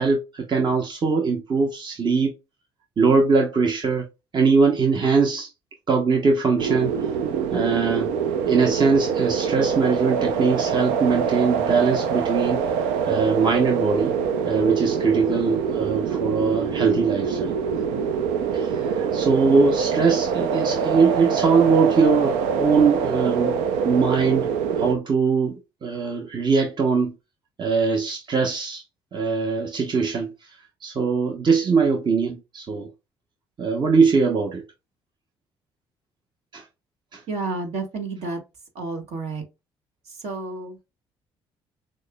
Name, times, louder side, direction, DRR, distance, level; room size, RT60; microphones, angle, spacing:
voice 1, 0.0-2.3 3.0-4.1 4.3-5.5 5.9-6.9 7.5-8.1 8.5-12.6 13.0-14.1 14.4-17.5 18.5-23.6 23.8-24.5 24.8-27.1 27.6-28.8 29.1-30.6 30.8-32.9 33.6-34.7 36.5-36.6 37.1-37.2, right 4 dB, 40° right, 0.8 m, -21 dB
sound 1, 6.6-24.9, right 6 dB, 80° right, 0.5 m, -24 dB
voice 2, 37.3-38.4 38.7-39.4 40.1-40.8, right 3 dB, 65° right, 1.6 m, -30 dB
6.2 x 2.1 x 2.2 m
hypercardioid pair, 55°, 12 cm